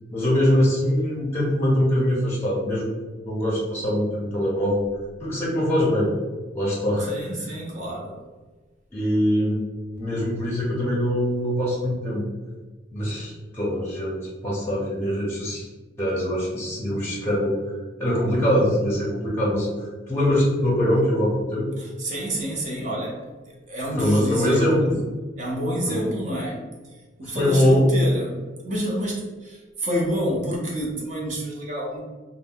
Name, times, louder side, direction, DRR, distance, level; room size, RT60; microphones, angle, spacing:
voice 1, 0.1-2.9 3.2-4.8 5.2-6.1 6.5-7.1 8.9-9.6 9.9-12.2 12.9-15.7 16.0-17.6 18.0-21.7 24.0-25.0 25.9-26.1 27.2-27.9, equal, 10° left, -5 dB, 0.6 m, -23 dB
voice 2, 7.0-8.2 21.8-24.9 25.4-32.0, equal, 40° right, -2 dB, 0.7 m, -29 dB
2.5 x 2.1 x 3.5 m, 1.3 s
head